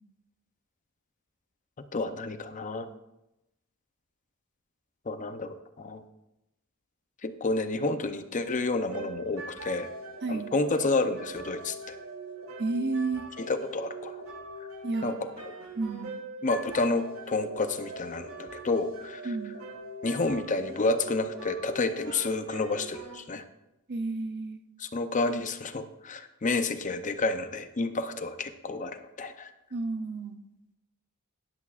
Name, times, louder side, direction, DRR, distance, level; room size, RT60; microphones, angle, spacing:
voice 1, 1.8-2.9 5.1-6.0 7.2-9.9 10.3-11.9 13.4-14.2 15.0-15.3 16.4-19.4 20.0-23.4 24.8-29.5, left 3 dB, 35° left, 9 dB, 0.6 m, -30 dB
sound 1, 8.9-23.2, right 2 dB, 75° right, 1.8 m, -42 dB
voice 2, 12.6-13.3 14.8-15.1 15.8-16.1 19.2-19.6 23.9-24.6 29.7-30.4, right 3 dB, 50° right, 9 dB, 0.6 m, -31 dB
13.0 x 10.5 x 2.4 m, 0.90 s
head